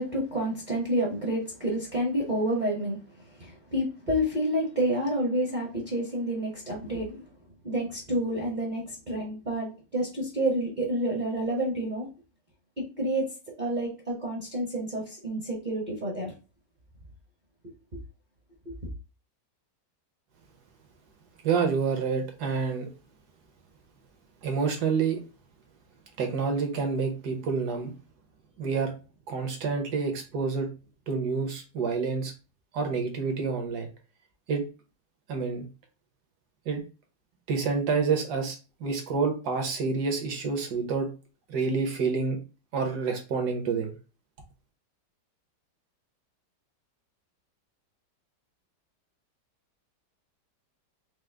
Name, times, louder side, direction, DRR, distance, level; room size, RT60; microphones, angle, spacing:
voice 1, 0.0-7.2 7.6-12.1 13.0-13.2 13.6-16.3 17.9-18.0 18.7-18.8, right 1 dB, 35° right, -3 dB, 0.8 m, -29 dB
voice 2, 21.4-22.9 24.4-25.2 26.2-27.9 28.6-28.9 29.3-30.7 31.1-32.3 32.7-33.9 34.5-34.6 35.3-35.6 36.7-36.8 37.5-41.1 41.5-42.4 42.7-43.9, right 5 dB, 65° right, 4 dB, 1.4 m, -28 dB
4.9 x 2.0 x 3.3 m, 0.33 s
omnidirectional pair, 1.9 m